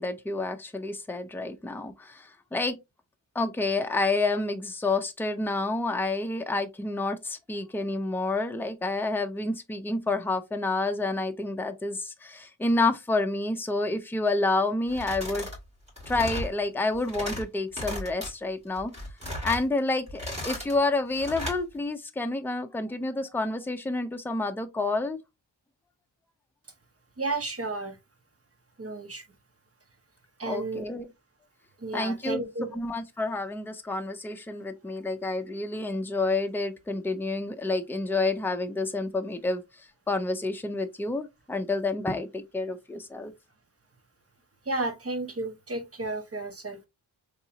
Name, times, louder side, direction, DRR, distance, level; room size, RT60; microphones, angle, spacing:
voice 1, 0.0-2.8 3.3-15.5 16.1-18.9 19.4-25.2 30.4-31.1 31.9-32.4 32.7-39.6 40.1-43.3, left 2 dB, 5° left, 0.5 m, -29 dB
sound 1, 14.9-15.6 15.9-16.5 16.9-17.4 17.7-18.3 18.8-19.6 20.1-20.7 21.1-21.6, left 1 dB, 15° right, 2.4 m, -35 dB
voice 2, 27.2-28.0 28.8-29.2 30.4-30.9 31.8-32.8 44.7-46.9, right 2 dB, 30° right, 0.9 m, -32 dB
3.9 x 2.9 x 2.7 m
wide cardioid pair, 85°, 45 cm